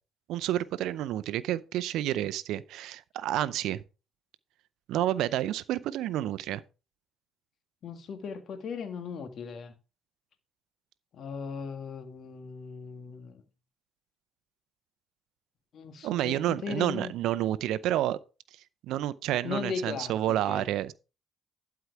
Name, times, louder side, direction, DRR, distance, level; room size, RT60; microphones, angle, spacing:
voice 1, 0.3-3.8 4.9-6.6 16.0-18.2 18.9-20.9, right 13 dB, 75° right, 0.5 m, -29 dB
voice 2, 7.8-9.7 11.1-13.4 15.7-17.1 19.4-20.7, left 5 dB, 60° left, 1.7 m, -38 dB
12.0 x 4.7 x 4.8 m
supercardioid pair, 60°, 0 cm